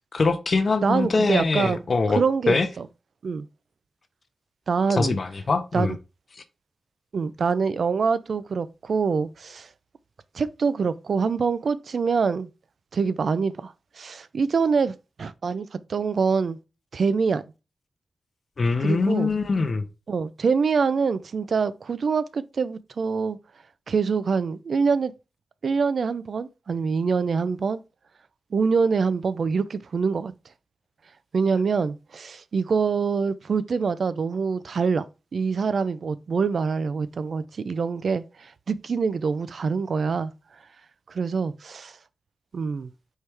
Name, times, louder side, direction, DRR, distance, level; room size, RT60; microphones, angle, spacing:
voice 1, 0.1-2.7 4.9-6.0 6.3-6.4 18.6-19.8, left 3 dB, 50° left, 0.6 m, -23 dB
voice 2, 0.8-1.8 2.1-2.9 3.2-3.5 4.7-5.2 5.7-5.9 7.1-9.7 10.3-12.5 12.9-16.6 16.9-17.4 18.8-19.3 20.1-23.4 23.9-25.1 25.6-27.8 28.5-30.3 31.3-35.0 35.3-40.3 41.1-41.9 42.5-42.9, right 5 dB, 65° right, 0.4 m, -25 dB
4.5 x 3.2 x 3.4 m
wide cardioid pair, 90°, 0 cm